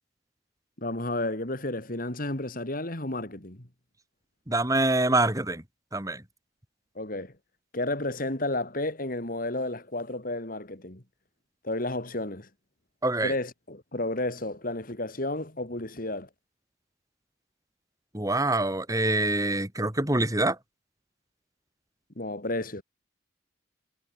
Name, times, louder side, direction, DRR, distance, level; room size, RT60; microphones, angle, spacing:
voice 1, 0.8-3.7 6.9-7.3 7.7-11.0 11.6-12.5 13.2-16.3 22.2-22.8, left 2 dB, 50° left, 3.3 m, -32 dB
voice 2, 4.5-5.6 5.9-6.2 13.0-13.3 18.1-20.6, right 2 dB, 20° right, 3.3 m, -25 dB
head